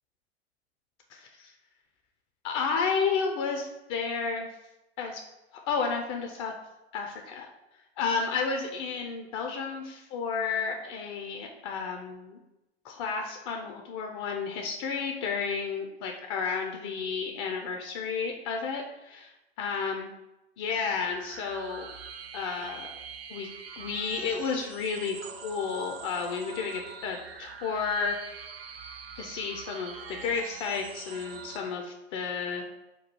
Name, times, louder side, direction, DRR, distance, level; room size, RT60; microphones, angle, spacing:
voice 1, 1.1-1.5 2.4-4.5 5.0-5.2 5.7-6.5 6.9-7.5 8.0-12.4 12.8-20.1 20.6-21.9 22.3-22.9 23.3-23.5 23.8-28.2 29.2-32.7, left 5 dB, 30° left, 2 dB, 0.3 m, -32 dB
sound 1, 20.9-31.6, right 6 dB, 60° right, 0.6 m, -44 dB
4.5 x 2.3 x 4.2 m, 0.96 s
figure-of-eight pair, 90°, 33 cm